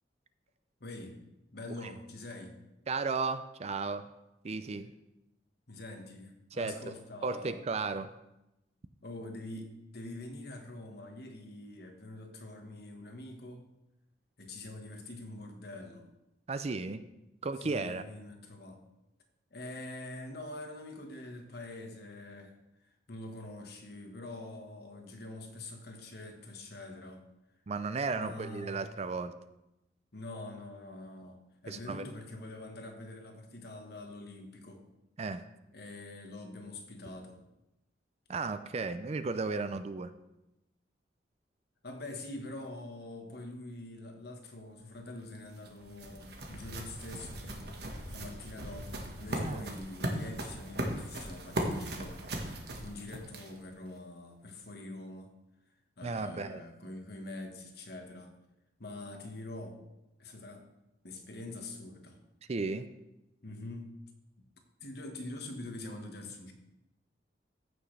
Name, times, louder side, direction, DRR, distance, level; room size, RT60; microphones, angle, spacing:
voice 1, 0.8-1.2 1.5-2.6 5.7-7.6 9.0-13.6 14.4-16.1 17.6-18.8 19.5-22.5 23.1-27.2 28.2-28.8 30.1-34.8 35.7-37.4 41.8-55.3 56.0-58.4 58.8-59.8 60.2-60.7 61.0-62.2 63.4-63.9 64.4-64.5 64.8-66.5, left 2 dB, 60° left, 4 dB, 1.4 m, -45 dB
voice 2, 2.9-4.1 4.4-4.9 6.5-6.9 7.2-8.1 16.5-17.0 17.4-18.0 27.7-29.3 31.7-32.0 35.2-35.4 38.3-40.1 49.4-49.7 56.0-56.6 62.5-62.9, right 4 dB, 35° right, 11 dB, 0.4 m, -34 dB
sound 1, 45.2-53.7, right 1 dB, 60° right, 1.4 m, -38 dB
14.5 x 6.2 x 3.3 m, 0.90 s
head